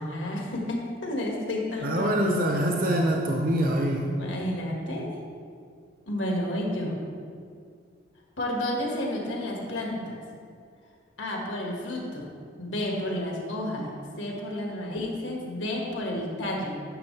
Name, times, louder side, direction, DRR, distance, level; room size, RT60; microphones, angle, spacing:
voice 1, 0.0-2.4 4.2-5.2 6.1-7.0 8.4-10.2 11.2-12.3 12.6-13.9 14.2-16.8, left 1 dB, 80° left, -1 dB, 1.7 m, -31 dB
voice 2, 1.8-4.0, right 1 dB, 45° right, 1 dB, 0.7 m, -24 dB
11.0 x 6.7 x 3.2 m, 2.2 s
head